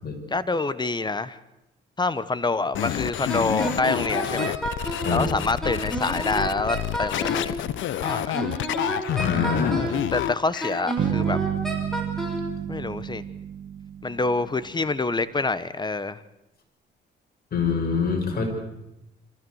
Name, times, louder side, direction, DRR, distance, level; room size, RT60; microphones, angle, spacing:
voice 1, 0.3-1.4 2.0-4.6 5.1-7.6 8.0-8.4 9.8-11.4 12.7-13.2 14.0-16.2, left 3 dB, 20° left, 15 dB, 1.1 m, -26 dB
sound 1, 2.7-10.8, left 12 dB, 75° left, 0.8 m, -29 dB
Wind instrument woodwind instrument, 3.3-5.2 5.6-7.5 8.1-10.0 10.6-12.5, right 1 dB, ahead, 6.2 m, -30 dB
voice 2, 9.0-9.8 17.5-18.5, left 5 dB, 50° left, 2 dB, 6.4 m, -25 dB
sound 2, 11.0-14.7, right 9 dB, 65° right, 2.3 m, -30 dB
26.0 x 15.5 x 8.0 m, 0.91 s
cardioid pair, 90°, 20 cm